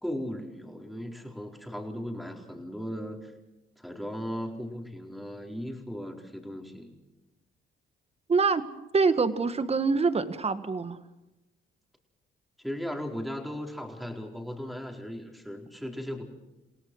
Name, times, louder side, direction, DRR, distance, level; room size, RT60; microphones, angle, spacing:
voice 1, 0.0-3.3 3.8-7.0 12.6-16.2, equal, ahead, 2 dB, 4.4 m, -37 dB
voice 2, 8.3-8.7 8.9-11.0, right 4 dB, 30° right, 11 dB, 1.7 m, -25 dB
29.5 x 17.5 x 6.3 m, 1.0 s
cardioid pair, 90°, 20 cm